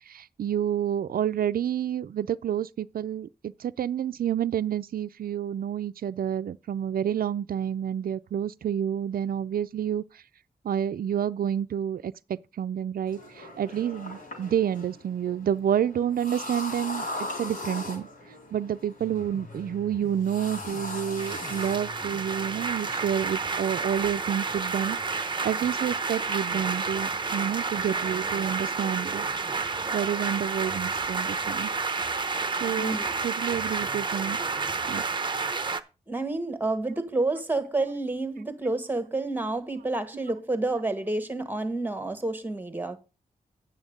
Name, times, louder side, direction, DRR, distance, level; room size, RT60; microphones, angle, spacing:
voice 1, 0.1-10.0 10.6-17.1 17.4-18.1 18.5-29.3 29.9-31.7 32.6-33.0 33.2-34.4 34.9-35.0, right 9 dB, 70° right, 0.4 m, -29 dB
sound 1, 13.1-23.3, left 1 dB, 65° left, 4.4 m, -40 dB
sound 2, 19.0-25.0, left 3 dB, 20° left, 0.9 m, -48 dB
sound 3, 21.2-35.8, right 4 dB, 30° right, 0.7 m, -30 dB
voice 2, 32.7-33.1 36.1-43.0, right 2 dB, 10° right, 1.3 m, -29 dB
9.2 x 7.0 x 5.1 m
wide cardioid pair, 135°, 15 cm